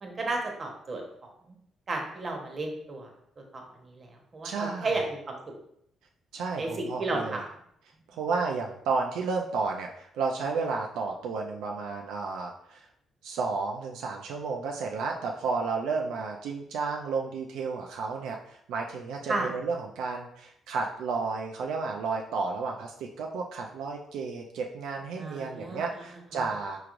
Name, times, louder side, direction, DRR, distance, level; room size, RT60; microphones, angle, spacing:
voice 1, 0.0-1.0 1.5-1.6 1.9-3.1 3.5-4.1 4.3-5.4 6.6-7.4 19.3-19.5 25.2-25.8, right 2 dB, 40° right, 2 dB, 1.0 m, -33 dB
voice 2, 4.4-5.0 6.3-7.4 8.1-12.9 13.2-26.8, right 4 dB, 90° right, 1 dB, 0.4 m, -32 dB
4.7 x 3.1 x 2.5 m, 0.72 s
cardioid pair, 90°, 0 cm